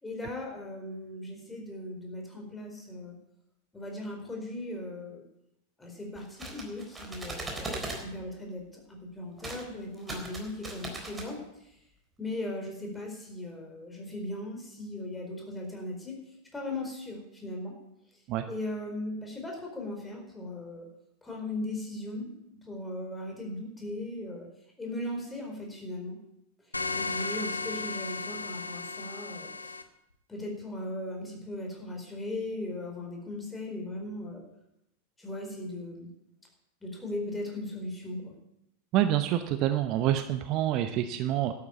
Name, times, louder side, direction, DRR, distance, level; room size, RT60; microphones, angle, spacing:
voice 1, 0.0-3.1 3.7-5.2 5.8-11.4 12.2-16.2 16.5-17.7 18.5-20.9 21.2-24.4 24.8-26.2 26.9-29.7 30.3-34.4 35.2-36.1 36.8-38.3, left 1 dB, 10° left, 1 dB, 4.5 m, -38 dB
sound 1, 6.2-8.0 9.4-9.6 9.9-11.3, right 2 dB, 10° right, 3.7 m, -38 dB
sound 2, 26.7-29.8, left 3 dB, 80° left, 1.0 m, -35 dB
voice 2, 38.9-41.5, right 12 dB, 40° right, 9 dB, 0.8 m, -27 dB
12.0 x 9.7 x 8.3 m, 0.81 s
figure-of-eight pair, 90°, 0 cm